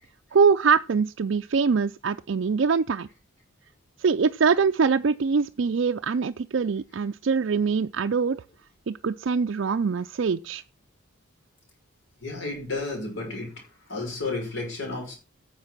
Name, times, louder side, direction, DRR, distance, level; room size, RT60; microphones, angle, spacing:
voice 1, 0.3-3.1 4.0-8.4 8.9-10.6, right 5 dB, 60° right, 0.4 m, -23 dB
voice 2, 12.2-13.6 13.9-15.2, left 3 dB, 65° left, 5.7 m, -32 dB
9.7 x 7.4 x 5.9 m
head